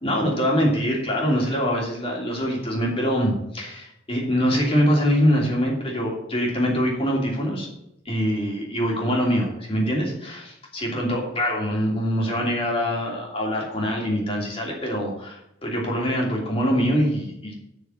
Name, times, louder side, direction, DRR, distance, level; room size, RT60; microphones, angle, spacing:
voice 1, 0.0-7.7 8.0-17.5, equal, 30° left, -1 dB, 2.8 m, -24 dB
7.2 x 6.4 x 7.6 m, 0.81 s
head